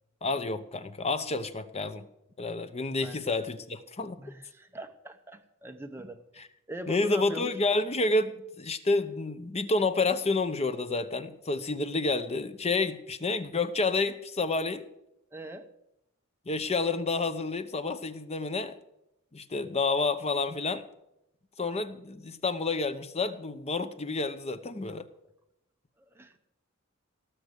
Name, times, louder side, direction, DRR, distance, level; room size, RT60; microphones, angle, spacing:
voice 1, 0.2-2.1 2.4-4.2 6.4-6.5 6.9-14.9 16.5-18.7 19.3-20.9 21.6-25.1, left 3 dB, 30° left, 11 dB, 0.9 m, -29 dB
voice 2, 4.2-6.4 6.7-7.5 15.3-15.7 26.1-26.4, right 1 dB, 10° right, 5 dB, 0.9 m, -41 dB
18.5 x 6.1 x 8.0 m, 0.84 s
head